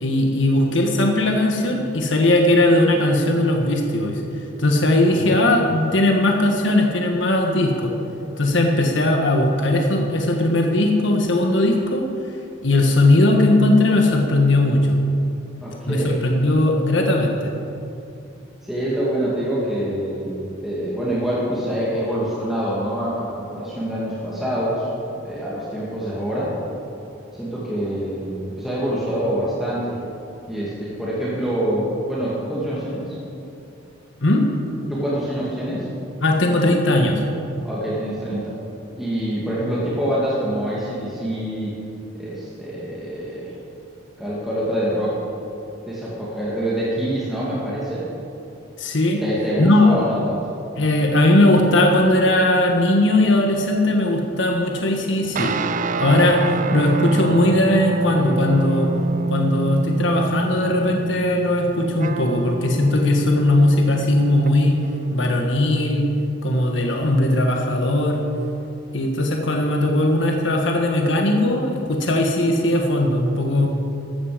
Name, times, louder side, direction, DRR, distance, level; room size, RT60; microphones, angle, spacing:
voice 1, 0.0-4.2 4.6-7.9 8.4-12.0 12.6-15.0 15.9-17.5 34.2-34.4 36.2-37.2 48.8-49.2 49.6-49.9 50.8-55.6 56.0-56.4 56.7-58.9 59.3-64.8 65.1-66.1 66.4-68.2 68.9-73.7, left 1 dB, 70° left, 1 dB, 1.5 m, -18 dB
voice 2, 15.6-16.3 18.6-24.9 25.2-26.5 27.4-30.0 30.5-33.2 34.9-35.9 37.6-38.5 39.0-41.8 42.1-43.5 44.2-45.2 45.9-48.0 49.2-50.5 73.6-73.7, right 1 dB, ahead, -8 dB, 2.5 m, -25 dB
sound 1, 55.4-65.1, right 2 dB, 40° right, 0.5 m, -26 dB
15.0 x 13.0 x 5.2 m, 2.7 s
head